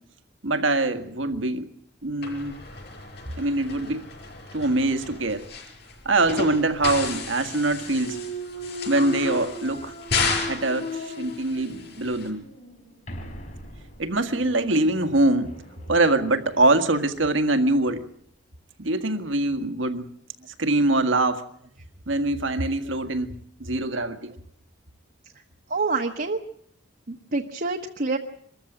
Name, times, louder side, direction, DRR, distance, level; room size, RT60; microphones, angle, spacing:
voice 1, 0.4-1.7 2.0-2.6 3.4-4.0 4.5-5.4 6.1-8.2 8.9-9.9 10.4-12.4 14.0-15.5 15.9-18.1 18.8-20.0 20.6-21.4 22.1-23.3 23.6-24.3, right 2 dB, 70° right, 10 dB, 1.9 m, -23 dB
sound 1, 2.2-12.3, left 4 dB, 55° left, 6.1 m, -33 dB
Thump thud, 7.9-11.9 12.4-17.1, equal, 40° left, 4.1 m, -38 dB
voice 2, 25.7-26.4 27.1-28.2, right 3 dB, 45° right, 2 dB, 1.3 m, -27 dB
24.5 x 14.5 x 9.0 m, 0.67 s
head